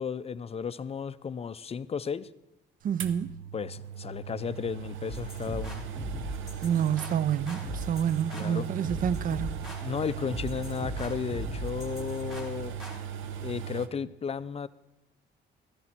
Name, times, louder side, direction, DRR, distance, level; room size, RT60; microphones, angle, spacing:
voice 1, 0.0-2.3 3.5-5.8 8.3-8.7 9.8-12.8 13.4-14.7, left 6 dB, 30° left, 0.4 m, -34 dB
voice 2, 2.8-3.4 6.6-9.6, right 9 dB, 45° right, 0.4 m, -28 dB
sound 1, 3.0-13.9, right 8 dB, 80° right, 0.7 m, -38 dB
sound 2, 5.1-13.0, equal, ahead, 3.0 m, -39 dB
13.5 x 10.5 x 4.4 m
cardioid pair, 90°, 20 cm